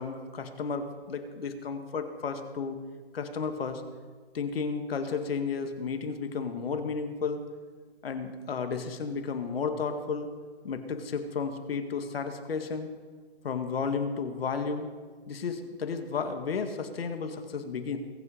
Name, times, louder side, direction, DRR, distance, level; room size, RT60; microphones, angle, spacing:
voice 1, 0.0-2.8 3.1-3.8 4.3-7.4 8.0-10.3 10.6-12.9 13.4-14.9 15.3-18.0, left 5 dB, 65° left, 7 dB, 1.9 m, -33 dB
21.5 x 7.9 x 5.0 m, 1.5 s
hypercardioid pair, 155°, 32 cm